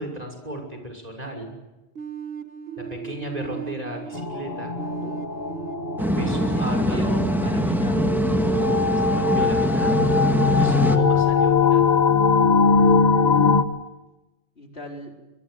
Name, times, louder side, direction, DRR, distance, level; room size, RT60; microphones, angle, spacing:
voice 1, 0.0-1.5 2.8-4.7 6.0-7.0 8.4-8.5 9.0-10.0 10.6-12.1, equal, 35° right, 4 dB, 6.3 m, -34 dB
sound 1, 2.0-8.7, right 7 dB, 65° right, 1.8 m, -37 dB
sound 2, 4.1-13.6, left 4 dB, 45° left, 1.5 m, -21 dB
sound 3, 6.0-11.0, equal, ahead, 1.7 m, -23 dB
voice 2, 6.5-8.1 14.6-15.1, left 1 dB, 70° left, 1 dB, 4.5 m, -37 dB
25.5 x 22.5 x 8.1 m, 1.1 s
omnidirectional pair, 1.1 m